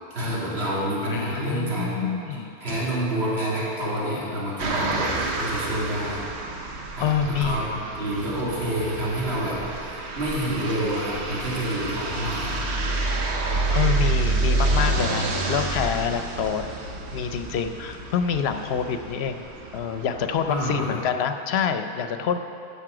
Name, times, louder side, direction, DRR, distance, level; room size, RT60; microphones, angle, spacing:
voice 1, 0.1-2.0 2.6-6.2 6.9-12.7 20.5-21.0, right 1 dB, 70° right, -8 dB, 2.5 m, -28 dB
voice 2, 1.0-2.6 7.0-7.7 13.7-16.6 17.1-19.5 19.7-22.4, left 7 dB, 75° left, 8 dB, 0.9 m, -26 dB
sound 1, 4.6-20.7, right 2 dB, 90° right, 1.2 m, -28 dB
12.5 x 6.9 x 4.9 m, 2.6 s
omnidirectional pair, 1.1 m